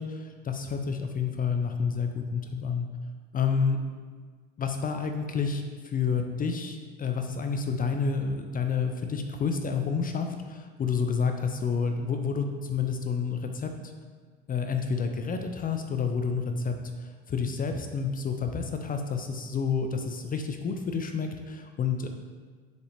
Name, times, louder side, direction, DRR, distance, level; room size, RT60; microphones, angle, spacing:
voice 1, 0.0-2.9 3.3-3.8 4.6-13.9 14.5-22.1, left 5 dB, 25° left, 5 dB, 0.5 m, -29 dB
6.4 x 4.9 x 3.3 m, 1.5 s
hypercardioid pair, 75°, 34 cm